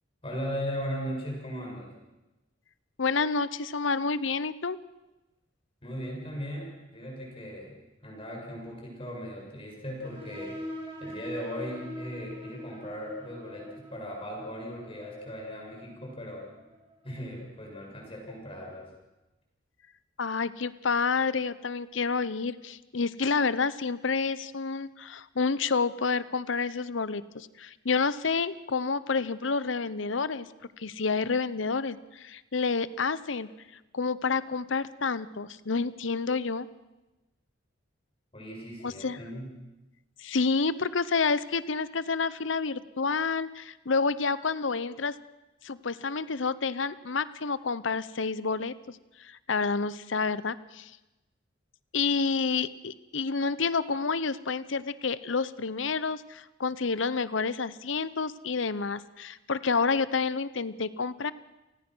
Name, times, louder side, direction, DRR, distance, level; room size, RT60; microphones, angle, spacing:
voice 1, 0.2-1.9 5.8-7.8 8.0-10.5 11.0-16.5 17.0-18.9 38.3-39.5, equal, 30° left, -1 dB, 7.4 m, -38 dB
voice 2, 3.0-4.8 20.2-30.5 30.8-33.5 33.9-36.7 38.8-39.2 40.2-45.2 45.6-50.9 51.9-61.3, left 4 dB, 80° left, 16 dB, 0.8 m, -29 dB
sound 1, 10.0-17.3, equal, 25° right, 5.7 m, -44 dB
29.5 x 19.5 x 6.2 m, 1.0 s
head